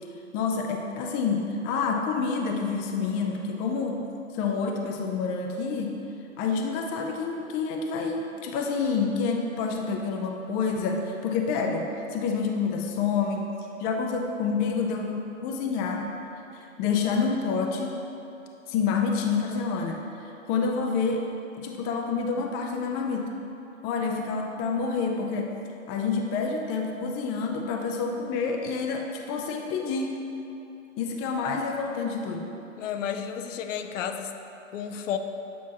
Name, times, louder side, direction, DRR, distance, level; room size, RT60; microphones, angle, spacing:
voice 1, 0.3-4.0 4.3-6.0 6.4-13.5 13.8-16.1 16.8-18.0 18.7-20.0 20.5-21.2 21.6-23.3 23.8-25.5 25.9-30.1 31.0-32.5, left 5 dB, 25° left, 2 dB, 0.4 m, -28 dB
voice 2, 32.8-34.3 34.7-35.2, left 8 dB, 70° left, 7 dB, 0.6 m, -32 dB
8.5 x 4.5 x 2.8 m, 2.9 s
hypercardioid pair, 120°, 39 cm